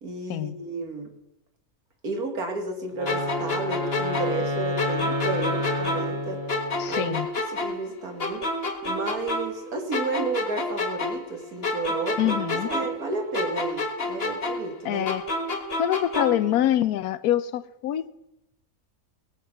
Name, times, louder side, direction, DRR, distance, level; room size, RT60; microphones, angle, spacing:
voice 1, 0.0-1.1 2.0-6.4 6.9-7.2 7.5-15.1, right 3 dB, 75° right, 2.4 m, -32 dB
Wind instrument woodwind instrument, 2.9-7.1, left 2 dB, 20° right, 2.0 m, -30 dB
sound 1, 3.1-6.2 6.5-9.6 9.9-13.1 13.3-16.5, left 2 dB, 40° left, 1.8 m, -29 dB
voice 2, 6.8-7.3 12.2-12.7 14.8-15.2 15.8-18.1, left 12 dB, 80° left, 1.2 m, -25 dB
18.5 x 7.6 x 6.0 m
omnidirectional pair, 1.6 m